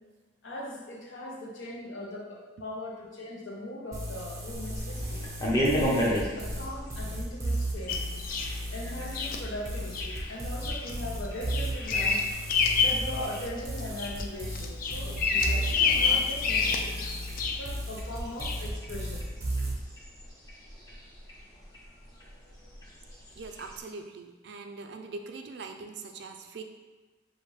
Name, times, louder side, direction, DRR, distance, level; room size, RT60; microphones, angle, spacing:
voice 1, 0.4-5.3 5.8-8.0 8.7-17.1 17.6-19.2, left 1 dB, 75° left, -2 dB, 0.9 m, -40 dB
sound 1, 3.9-19.7, right 1 dB, 15° right, 0.7 m, -35 dB
sound 2, 4.5-23.8, equal, 20° left, 0.8 m, -37 dB
Bird vocalization bird call bird song, 7.9-8.6 9.1-9.4 9.9-10.1 10.6-10.9 11.2-13.1 13.5-14.2 14.6-17.7 18.4-18.6, left 5 dB, 45° left, 0.3 m, -27 dB
voice 2, 23.3-26.6, right 4 dB, 55° right, 5 dB, 0.3 m, -42 dB
6.4 x 2.6 x 3.2 m, 1.3 s
head